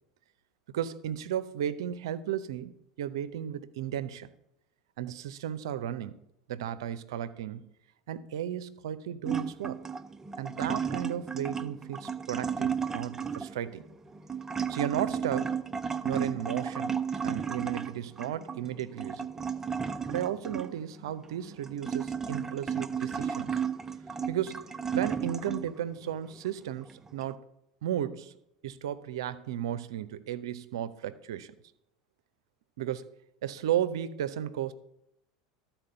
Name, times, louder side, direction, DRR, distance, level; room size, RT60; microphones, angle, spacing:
voice 1, 0.7-4.3 5.0-6.2 6.5-7.7 8.1-9.8 10.4-13.8 14.7-15.6 16.0-17.0 17.2-19.3 20.1-23.6 24.3-27.4 27.8-28.4 28.6-31.5 32.8-33.1 33.4-34.7, right 10 dB, 70° right, 14 dB, 0.6 m, -34 dB
sound 1, 9.2-25.8 26.3-27.3, right 7 dB, 20° right, 0.5 m, -34 dB
12.5 x 4.4 x 6.6 m, 0.81 s
figure-of-eight pair, 80°, 3 cm